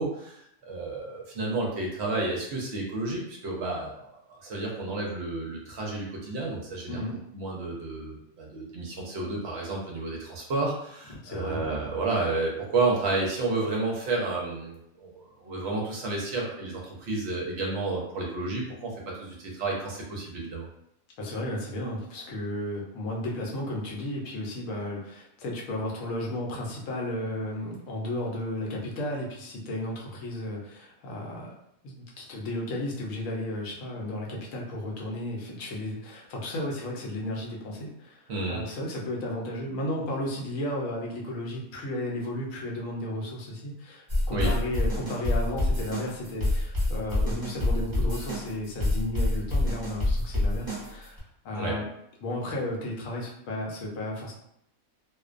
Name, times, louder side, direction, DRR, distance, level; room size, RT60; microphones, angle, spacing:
voice 1, 0.0-4.0 4.3-7.0 7.3-18.9 19.2-20.7 38.3-38.6 44.3-44.5 51.5-51.8, right 3 dB, 60° right, -2 dB, 0.7 m, -31 dB
voice 2, 6.9-7.2 11.2-11.6 21.2-31.6 31.8-51.2 51.4-51.9 52.2-54.3, left 1 dB, 70° left, -2 dB, 0.9 m, -34 dB
sound 1, 10.9-12.2, left 1 dB, 45° left, 0.6 m, -45 dB
sound 2, 44.1-51.2, left 1 dB, 20° right, 0.6 m, -27 dB
2.4 x 2.1 x 2.4 m, 0.75 s
omnidirectional pair, 1.5 m